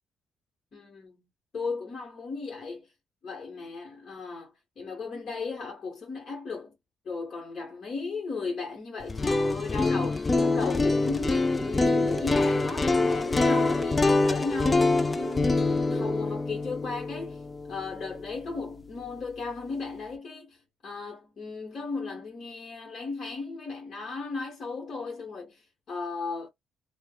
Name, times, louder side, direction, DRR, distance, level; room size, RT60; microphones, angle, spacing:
voice 1, 0.7-1.2 1.5-2.9 3.2-6.8 7.0-26.5, left 4 dB, 50° left, 1.1 m, -36 dB
sound 1, 9.0-19.0, left 3 dB, 25° left, 0.4 m, -25 dB
sound 2, 11.2-16.2, right 4 dB, 30° right, 0.4 m, -39 dB
3.3 x 2.1 x 2.3 m
cardioid pair, 90°, 0 cm